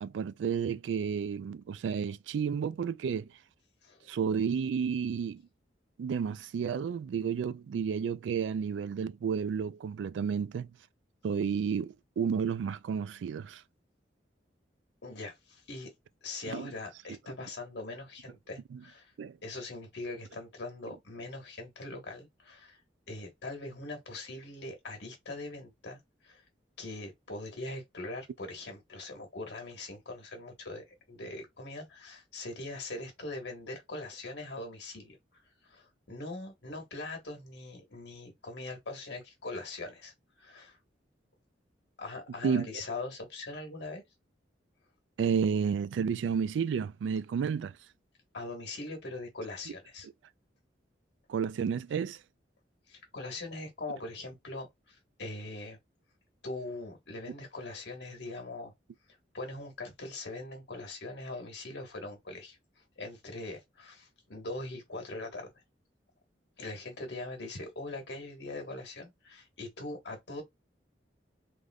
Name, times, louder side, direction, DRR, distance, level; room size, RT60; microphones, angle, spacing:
voice 1, 0.0-3.3 4.1-5.4 6.0-10.7 11.2-13.6 16.5-16.7 18.7-18.8 19.2-19.4 42.4-42.7 45.2-47.7 51.3-52.2, right 6 dB, 90° right, 0.3 m, -31 dB
voice 2, 3.8-4.1 15.0-15.9 16.2-19.1 19.4-22.8 23.1-26.4 26.8-35.2 35.6-40.8 42.0-44.0 48.3-50.1 52.9-55.8 56.4-58.7 59.3-62.6 63.0-65.5 66.6-70.4, left 2 dB, 70° left, 1.3 m, -41 dB
3.4 x 2.5 x 2.2 m
head